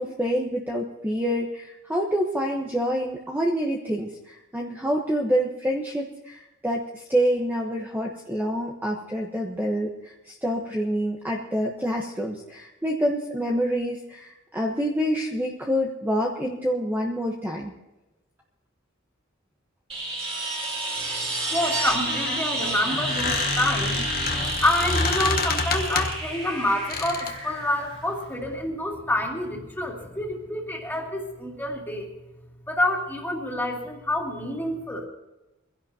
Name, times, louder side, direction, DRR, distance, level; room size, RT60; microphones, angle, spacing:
voice 1, 0.0-17.7, equal, 10° right, -1 dB, 1.2 m, -27 dB
sound 1, 19.9-28.6 30.9-31.0, right 2 dB, 25° right, 2.6 m, -30 dB
voice 2, 21.5-24.0 24.6-32.1 32.7-35.1, left 1 dB, 10° left, -1 dB, 2.7 m, -27 dB
Squeak, 21.9-26.3 26.9-27.4, left 4 dB, 45° left, 1.3 m, -28 dB
24.0 x 16.0 x 2.9 m, 0.98 s
head